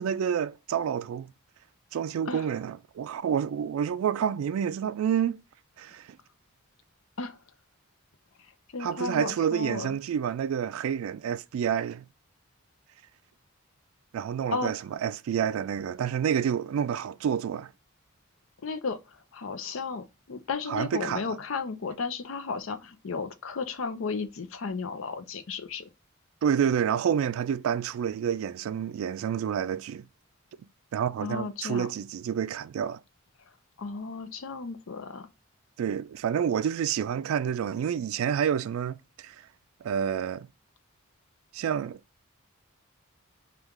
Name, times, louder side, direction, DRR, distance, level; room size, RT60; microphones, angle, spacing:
voice 1, 0.0-1.3 1.9-5.4 5.8-6.2 8.8-12.1 14.1-17.7 20.7-21.3 26.4-30.0 30.9-33.0 35.8-39.4 39.8-40.5 41.5-42.0, right 8 dB, 85° right, 0.3 m, -28 dB
voice 2, 8.7-10.0 14.5-14.7 18.6-25.9 31.2-31.9 33.8-35.3, left 4 dB, 70° left, 0.6 m, -34 dB
3.5 x 2.4 x 3.0 m
head